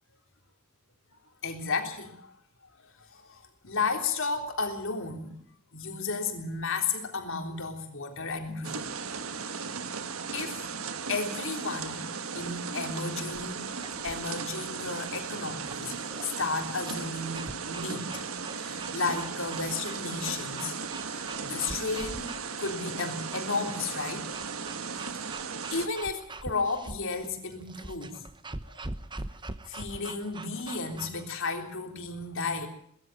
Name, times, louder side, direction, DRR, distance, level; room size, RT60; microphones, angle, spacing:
voice 1, 1.4-2.3 3.0-5.3 5.7-8.9 9.6-9.7 10.3-10.6 11.1-13.7 14.0-16.0 16.2-18.2 18.6-20.7 21.1-24.3 24.7-25.2 25.7-28.2 28.7-28.8 29.7-32.7, left 4 dB, 65° left, 3 dB, 3.6 m, -33 dB
sound 1, 8.6-25.9, right 5 dB, 70° right, 1.5 m, -36 dB
sound 2, 13.3-31.2, right 2 dB, 20° right, 1.0 m, -44 dB
20.0 x 14.5 x 9.0 m, 0.69 s
head